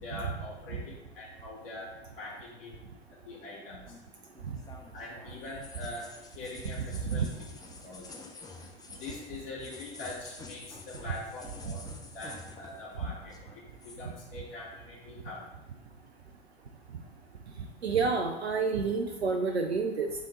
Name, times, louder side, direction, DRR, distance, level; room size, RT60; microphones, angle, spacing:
voice 1, 0.0-2.7 3.2-4.0 4.9-6.1 6.3-7.2 7.8-8.3 9.0-11.8 12.1-15.4, left 2 dB, 60° left, -6 dB, 2.3 m, -43 dB
sound 1, 3.9-13.0 13.2-14.1, left 3 dB, 10° left, 0.6 m, -49 dB
voice 2, 17.8-20.3, right 4 dB, 85° right, 4 dB, 0.5 m, -29 dB
7.2 x 3.7 x 3.9 m, 0.95 s
figure-of-eight pair, 80°, 31 cm